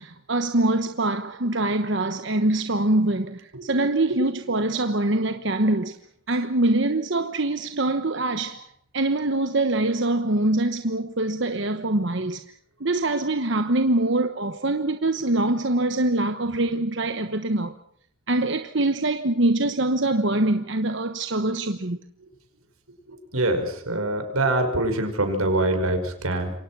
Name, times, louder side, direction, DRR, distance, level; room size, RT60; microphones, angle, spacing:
voice 1, 0.0-6.0 6.3-8.7 8.9-12.4 12.8-17.8 18.3-22.0, right 2 dB, 55° right, 1.1 m, -24 dB
voice 2, 23.1-26.5, right 2 dB, 90° right, 5.5 m, -24 dB
27.5 x 24.0 x 6.2 m
head